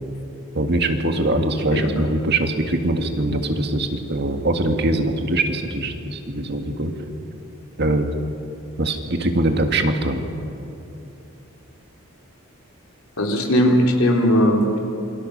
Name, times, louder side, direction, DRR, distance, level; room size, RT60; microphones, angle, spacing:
voice 1, 0.5-6.9 7.8-8.1 8.8-10.2, right 1 dB, 50° right, 5 dB, 2.0 m, -22 dB
voice 2, 13.2-14.8, equal, 90° left, 0 dB, 4.0 m, -18 dB
27.5 x 24.5 x 6.7 m, 2.9 s
head